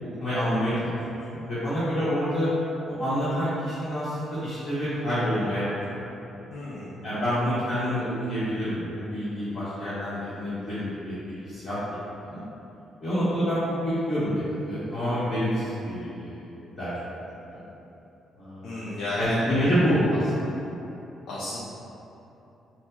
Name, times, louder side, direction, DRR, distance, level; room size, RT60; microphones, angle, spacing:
voice 1, 0.2-0.9 1.3-2.5 2.9-5.7 7.0-11.2 11.4-11.8 12.3-12.4 13.0-16.4 16.8-16.9 17.5-17.6 18.4-20.3, equal, 35° left, -14 dB, 1.1 m, -27 dB
voice 2, 6.5-6.9 18.6-19.4 21.3-21.6, left 2 dB, 70° left, -8 dB, 0.5 m, -33 dB
4.3 x 2.1 x 2.2 m, 2.9 s
cardioid pair, 90°, 0 cm